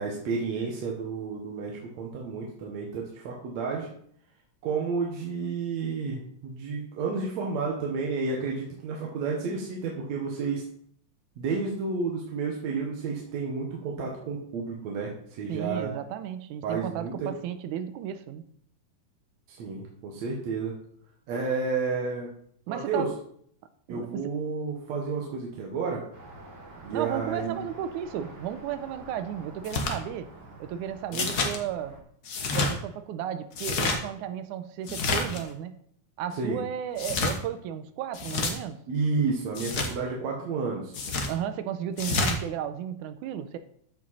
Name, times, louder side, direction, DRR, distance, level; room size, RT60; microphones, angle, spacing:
voice 1, 0.0-3.9 4.6-10.6 11.4-15.9 16.6-17.3 19.5-20.7 21.3-22.3 22.7-23.1 23.9-26.0 26.8-27.6 31.1-31.5 36.4-36.6 38.9-40.9, right 4 dB, 65° right, -1 dB, 2.4 m, -31 dB
voice 2, 15.5-18.4 22.7-23.1 23.9-24.2 26.9-30.3 30.6-32.0 32.5-35.8 36.2-38.8 41.3-43.6, right 9 dB, 90° right, 10 dB, 2.1 m, -34 dB
sound 1, 26.1-32.0, right 2 dB, 40° right, 1.7 m, -47 dB
sound 2, 29.6-30.0 31.1-31.6 32.2-32.7 33.5-34.0 34.9-35.4 37.0-37.4 38.1-38.5 39.5-39.9 40.9-41.3 42.0-42.4, left 3 dB, 65° left, 0.9 m, -28 dB
13.5 x 5.1 x 4.1 m, 0.65 s
omnidirectional pair, 3.5 m